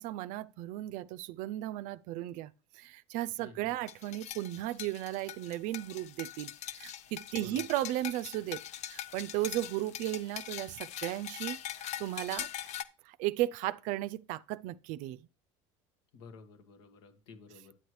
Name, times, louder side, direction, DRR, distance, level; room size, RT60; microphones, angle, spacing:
voice 1, 0.0-6.5 6.8-8.6 8.9-12.7 13.1-15.2, right 15 dB, 65° right, 0.4 m, -35 dB
voice 2, 3.4-3.7 7.3-7.6 16.1-17.7, left 5 dB, 80° left, 1.6 m, -52 dB
sound 1, 3.9-12.8, left 11 dB, 55° left, 0.6 m, -42 dB
9.7 x 7.9 x 3.1 m
supercardioid pair, 90°, 14 cm